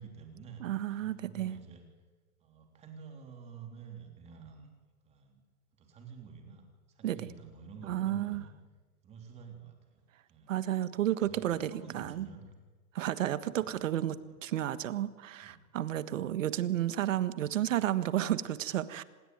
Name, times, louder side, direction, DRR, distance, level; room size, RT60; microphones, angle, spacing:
voice 1, 0.0-0.6 0.9-1.9 2.4-4.7 5.0-5.4 5.8-8.5 9.0-10.0 10.3-10.5 11.2-12.5 13.6-13.8 14.0-14.4 15.4-15.6, right 5 dB, 15° right, 3 dB, 3.4 m, -50 dB
voice 2, 0.6-1.6 7.0-7.2 7.9-8.4 10.5-12.3 12.9-14.2 14.4-19.0, right 12 dB, 60° right, 14 dB, 1.6 m, -32 dB
26.0 x 21.0 x 9.4 m, 1.2 s
hypercardioid pair, 170°, 44 cm